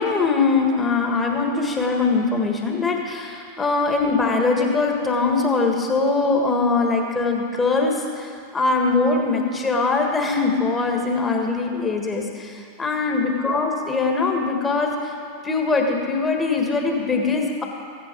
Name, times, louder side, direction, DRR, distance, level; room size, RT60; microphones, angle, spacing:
voice 1, 0.0-15.1 15.4-17.6, left 3 dB, 15° left, 2 dB, 1.7 m, -22 dB
15.5 x 10.0 x 4.6 m, 2.3 s
figure-of-eight pair, 90°, 0 cm